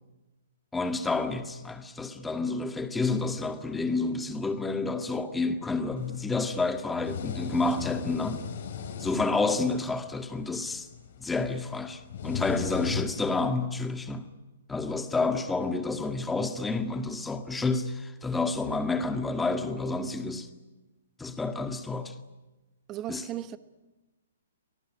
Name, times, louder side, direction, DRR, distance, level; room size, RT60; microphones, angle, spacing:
voice 1, 0.7-8.4 9.0-10.9 11.2-14.3 14.7-20.5 21.2-22.1 23.1-23.2, left 3 dB, 10° left, 1.9 m, -29 dB
sound 1, 6.0-13.5, left 7 dB, 55° left, 4.4 m, -38 dB
voice 2, 22.9-23.6, right 12 dB, 25° right, 1.2 m, -36 dB
25.0 x 19.0 x 10.0 m
figure-of-eight pair, 125°, 0 cm